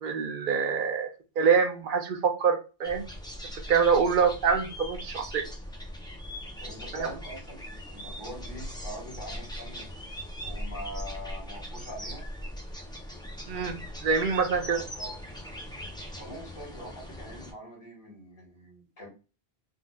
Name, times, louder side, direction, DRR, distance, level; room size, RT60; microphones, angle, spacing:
voice 1, 0.0-3.0 3.5-5.5 6.9-7.1 13.5-14.9, right 6 dB, 60° right, 7 dB, 0.7 m, -26 dB
sound 1, 2.8-17.5, equal, 5° left, 0.3 m, -40 dB
voice 2, 6.6-9.9 10.4-12.2 14.3-15.2 16.2-19.1, equal, 30° left, -4 dB, 1.4 m, -44 dB
3.7 x 2.4 x 2.2 m, 0.32 s
omnidirectional pair, 1.0 m